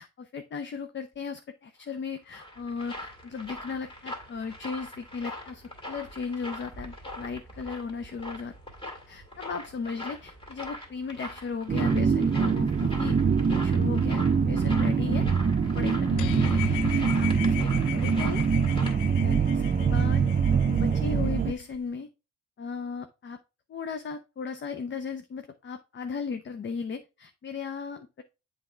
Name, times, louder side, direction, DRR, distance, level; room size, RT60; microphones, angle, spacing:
voice 1, 0.0-8.5 9.1-13.2 13.5-15.3 15.7-16.6 16.9-18.4 19.2-20.3 20.7-22.1 22.6-23.4 23.7-28.2, left 5 dB, 40° left, 9 dB, 0.6 m, -36 dB
sound 1, 1.9-19.0, equal, 20° left, 2.1 m, -41 dB
sound 2, 11.7-21.5, right 6 dB, 30° right, 0.6 m, -24 dB
sound 3, 16.2-21.8, left 15 dB, 85° left, 0.5 m, -38 dB
7.6 x 3.5 x 4.3 m, 0.28 s
cardioid pair, 90°, 30 cm